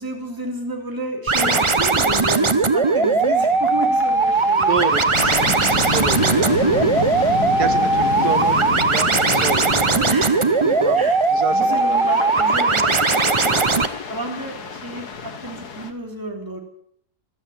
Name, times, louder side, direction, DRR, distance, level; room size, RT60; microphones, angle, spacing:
voice 1, 0.0-4.8 7.1-7.6 10.0-10.4 11.0-11.2 11.5-13.2 14.1-16.6, right 1 dB, 10° right, 1 dB, 3.0 m, -31 dB
sound 1, 1.3-13.9, right 3 dB, 30° right, 0.5 m, -19 dB
sound 2, 1.4-15.9, left 5 dB, 70° left, 2.0 m, -30 dB
voice 2, 4.7-7.0 7.6-10.3 10.6-12.0 13.5-13.7, right 5 dB, 70° right, 8 dB, 2.0 m, -29 dB
15.0 x 13.0 x 7.5 m, 0.66 s
omnidirectional pair, 1.8 m